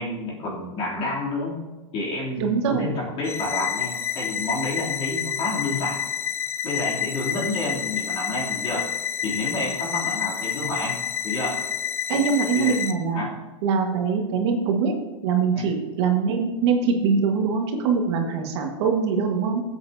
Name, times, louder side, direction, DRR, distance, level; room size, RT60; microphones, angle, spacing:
voice 1, 0.0-1.6 1.9-6.0 6.6-8.9 9.2-11.6 12.5-12.8 13.1-13.3 15.5-15.7, left 2 dB, 35° left, -4 dB, 3.1 m, -29 dB
voice 2, 2.4-2.9 12.1-13.2 13.6-15.0 15.2-19.6, right 5 dB, 55° right, 3 dB, 1.6 m, -23 dB
sound 1, 3.2-12.9, left 9 dB, 15° left, 0.4 m, -29 dB
15.5 x 8.0 x 2.8 m, 1.2 s
supercardioid pair, 150°, 17 cm